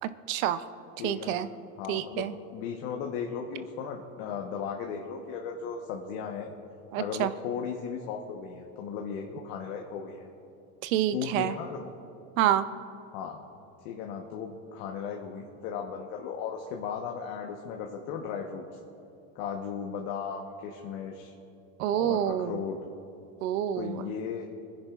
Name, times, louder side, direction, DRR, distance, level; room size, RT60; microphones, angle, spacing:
voice 1, 0.0-0.6 1.0-1.5 1.9-2.3 6.9-7.3 10.8-11.6 12.4-12.6 21.8-22.6 23.4-24.1, right 11 dB, 80° right, 13 dB, 0.7 m, -28 dB
voice 2, 1.0-1.4 1.8-6.5 7.0-10.2 11.1-11.9 13.1-13.4 13.8-18.6 19.3-21.3 21.9-22.8 23.8-24.4, left 6 dB, 65° left, 1 dB, 1.2 m, -36 dB
25.0 x 10.5 x 2.4 m, 2.9 s
supercardioid pair, 115°, 39 cm